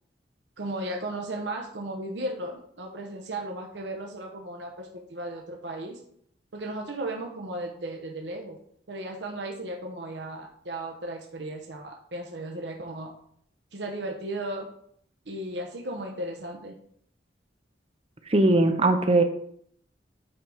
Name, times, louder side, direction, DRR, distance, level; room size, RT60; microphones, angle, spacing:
voice 1, 0.6-6.0 6.5-8.6 8.9-13.1 13.7-14.7 15.3-16.8, right 1 dB, 75° right, 1 dB, 1.0 m, -35 dB
voice 2, 18.3-19.2, right 2 dB, 35° right, 6 dB, 0.7 m, -20 dB
8.7 x 4.0 x 4.8 m, 0.67 s
head